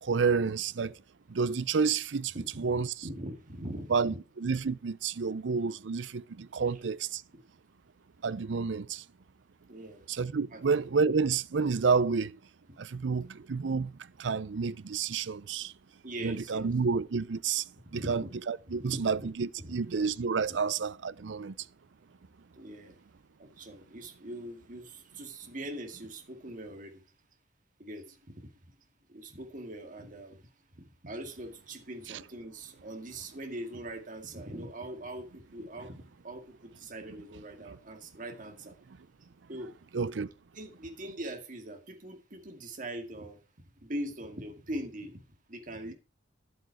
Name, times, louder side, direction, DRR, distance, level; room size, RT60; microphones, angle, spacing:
voice 1, 0.0-1.0 1.3-2.9 3.9-7.2 8.2-9.0 10.1-12.4 12.8-15.7 16.2-21.6 32.1-32.2 39.9-40.3, right 5 dB, 75° right, 0.5 m, -30 dB
voice 2, 2.3-4.2 5.3-5.4 9.7-10.1 10.5-10.6 12.7-12.8 16.0-16.7 17.9-18.3 18.7-19.3 19.6-19.8 20.5-20.6 22.6-23.0 23.4-27.0 27.8-28.5 29.1-38.8 39.5-39.7 40.5-43.4 43.8-45.2 45.5-45.9, right 1 dB, 45° right, 2.3 m, -42 dB
11.5 x 7.9 x 4.7 m
head